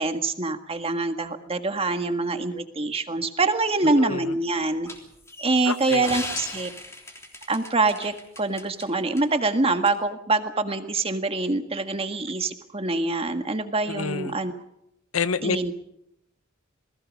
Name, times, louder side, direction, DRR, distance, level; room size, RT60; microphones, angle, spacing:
voice 1, 0.0-4.9 5.4-6.7 7.5-14.5 15.4-15.7, right 3 dB, 30° right, 7 dB, 1.7 m, -25 dB
voice 2, 3.8-4.3 5.6-6.4 13.9-14.4 15.1-15.6, left 5 dB, 90° left, 13 dB, 1.0 m, -29 dB
sound 1, 4.9-8.9 9.2-9.3 9.9-10.0, left 1 dB, 15° left, 3.3 m, -38 dB
28.5 x 20.0 x 5.3 m, 0.79 s
head